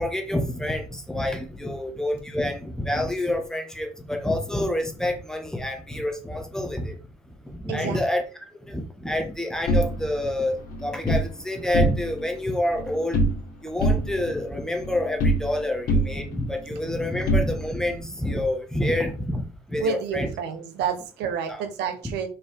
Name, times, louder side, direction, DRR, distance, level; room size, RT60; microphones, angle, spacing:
voice 1, 0.0-6.9 7.5-8.2 8.7-13.2 13.6-20.3 21.5-21.6 22.0-22.1, left 1 dB, 5° left, 3 dB, 1.7 m, -28 dB
voice 2, 7.7-8.0 19.8-22.3, right 8 dB, 85° right, 7 dB, 1.3 m, -29 dB
sound 1, 9.7-11.3 11.6-12.3 12.6-13.5 13.8-15.6 15.9-18.0, right 1 dB, 55° left, 2.0 m, -25 dB
5.9 x 5.1 x 3.8 m, 0.36 s
cardioid pair, 110°, 17 cm